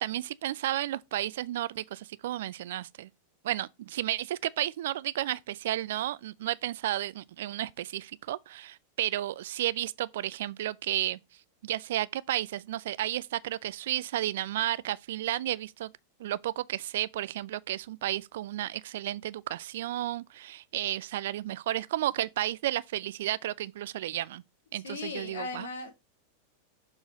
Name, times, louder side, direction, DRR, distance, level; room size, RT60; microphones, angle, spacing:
voice 1, 0.0-3.1 3.4-11.2 11.6-15.9 16.2-24.4 24.7-25.7, right 13 dB, 55° right, 0.3 m, -32 dB
voice 2, 24.8-25.9, left 4 dB, 65° left, 1.4 m, -37 dB
7.0 x 3.9 x 4.1 m
figure-of-eight pair, 90°, 0 cm